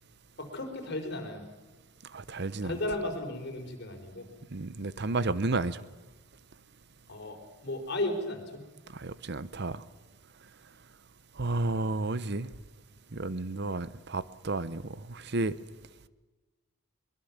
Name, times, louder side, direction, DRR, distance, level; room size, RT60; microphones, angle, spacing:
voice 1, 0.4-1.4 2.6-4.3 7.1-7.4 7.6-8.6, left 1 dB, 55° left, 3 dB, 4.7 m, -34 dB
voice 2, 2.1-2.7 4.5-5.8 8.9-9.8 11.4-12.5 13.1-14.8 15.1-15.5, right 2 dB, 55° right, 16 dB, 0.9 m, -32 dB
23.5 x 21.5 x 7.4 m, 1.2 s
head